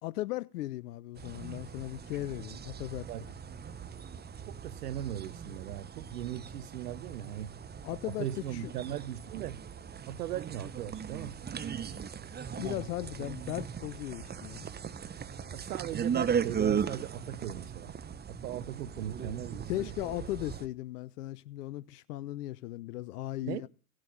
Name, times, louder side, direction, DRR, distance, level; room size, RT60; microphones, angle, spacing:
voice 1, 0.0-3.3 7.8-8.7 12.6-14.7 19.7-23.7, left 16 dB, 80° left, 0.6 m, -37 dB
sound 1, 1.1-20.7, right 7 dB, 20° right, 1.0 m, -38 dB
voice 2, 4.5-7.5 8.0-9.6 10.1-11.3 15.5-17.9 18.3-19.9 23.4-23.6, right 12 dB, 85° right, 0.9 m, -38 dB
17.0 x 7.6 x 7.3 m
hypercardioid pair, 85°, 46 cm